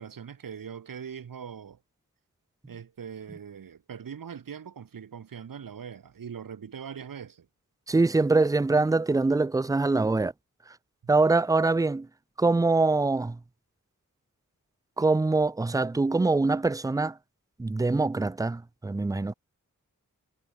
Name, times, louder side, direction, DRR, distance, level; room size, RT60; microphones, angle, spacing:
voice 1, 0.0-1.8 2.7-7.5, right 7 dB, 80° right, 1.3 m, -41 dB
voice 2, 7.9-10.3 11.1-12.1 12.4-13.4 15.0-17.2 17.6-19.3, right 3 dB, 10° right, 0.3 m, -24 dB
wide cardioid pair, 115°, 33 cm